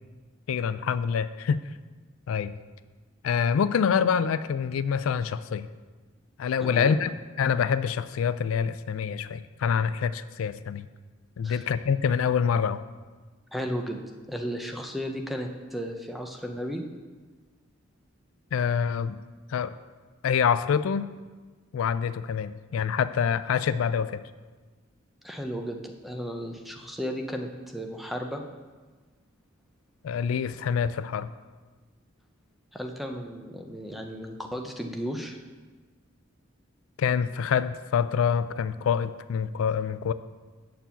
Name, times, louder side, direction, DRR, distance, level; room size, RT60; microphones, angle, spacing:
voice 1, 0.5-1.6 2.3-2.5 3.2-5.7 6.4-10.9 11.4-12.8 18.5-19.2 19.5-19.7 20.2-21.1 21.7-24.2 30.0-31.3 37.0-40.1, left 7 dB, 90° left, 14 dB, 0.3 m, -26 dB
voice 2, 6.6-6.9 11.4-11.6 13.5-14.0 14.3-16.8 25.2-28.4 32.7-35.4, equal, ahead, 3 dB, 0.6 m, -34 dB
7.5 x 4.6 x 6.9 m, 1.4 s
head